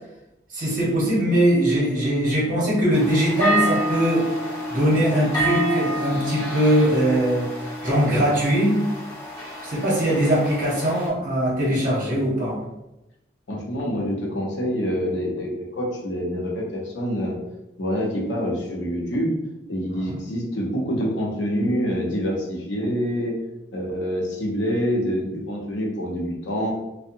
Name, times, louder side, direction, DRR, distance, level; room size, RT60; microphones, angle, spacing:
voice 1, 0.5-4.3 4.7-8.8 9.6-12.6 20.1-20.2, right 1 dB, 45° right, -5 dB, 0.8 m, -21 dB
sound 1, 2.9-11.1, equal, 20° left, 0.6 m, -28 dB
voice 2, 13.5-17.4 17.8-19.3 19.7-23.4 23.7-26.7, equal, 90° left, -2 dB, 0.7 m, -26 dB
2.7 x 2.0 x 2.5 m, 0.93 s
head